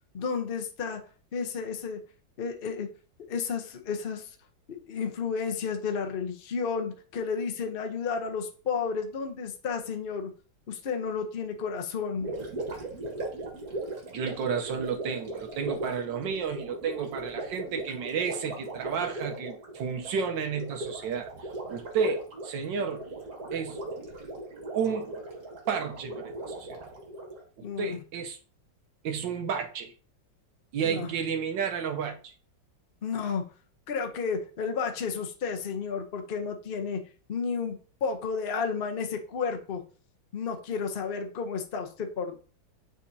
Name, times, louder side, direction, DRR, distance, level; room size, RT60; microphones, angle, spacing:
voice 1, 0.1-1.0 1.3-2.0 2.4-2.9 3.3-4.4 4.7-10.3 10.7-12.3 27.6-28.0 30.8-31.1 33.0-33.4 33.9-37.0 37.3-39.8 40.3-42.4, left 5 dB, 45° left, 0.7 m, -32 dB
Gurgling, 12.1-27.4, right 2 dB, 55° right, 2.0 m, -38 dB
voice 2, 14.1-21.3 21.7-23.1 23.5-23.8 24.7-25.1 25.7-26.8 27.6-28.4 29.0-29.9 30.7-32.3, right 6 dB, 75° right, 1.5 m, -31 dB
9.3 x 4.2 x 2.7 m
omnidirectional pair, 2.0 m